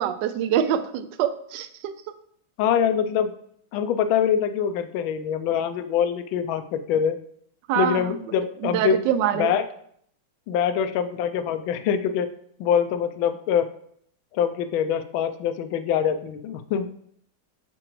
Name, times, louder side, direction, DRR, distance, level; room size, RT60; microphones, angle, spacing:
voice 1, 0.0-1.9 7.7-8.0 8.6-9.5, right 10 dB, 75° right, 11 dB, 1.0 m, -24 dB
voice 2, 2.6-3.3 3.7-7.2 7.8-9.0 9.3-9.6 10.5-12.3 12.6-13.7 14.3-16.9, left 8 dB, 75° left, 10 dB, 1.3 m, -24 dB
9.9 x 4.4 x 3.1 m, 0.65 s
omnidirectional pair, 2.3 m